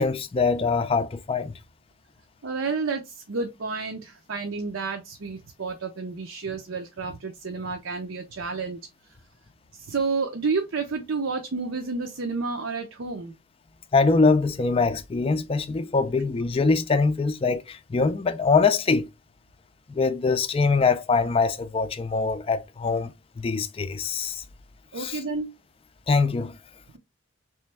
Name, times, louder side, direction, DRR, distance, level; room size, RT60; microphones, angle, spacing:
voice 1, 0.0-1.5 13.9-19.1 19.9-23.1 23.4-24.4 25.0-25.2 26.1-26.6, left 4 dB, 30° left, 0.4 m, -23 dB
voice 2, 2.4-8.8 9.7-13.3 24.9-25.5, right 4 dB, 75° right, 0.6 m, -30 dB
3.3 x 3.2 x 3.3 m
head